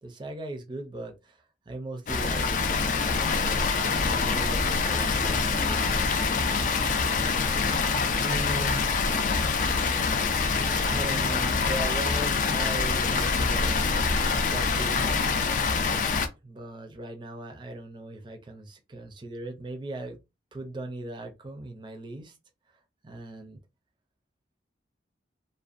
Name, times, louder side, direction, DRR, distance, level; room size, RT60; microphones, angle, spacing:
voice 1, 0.0-1.4 1.7-3.3 4.0-6.7 8.2-8.9 10.8-14.0 14.3-15.3 16.4-20.2 20.5-22.4 23.0-23.6, right 1 dB, 25° right, 0.4 m, -38 dB
Water, 2.1-16.3, left 4 dB, 40° left, 0.3 m, -25 dB
2.5 x 2.1 x 2.4 m
head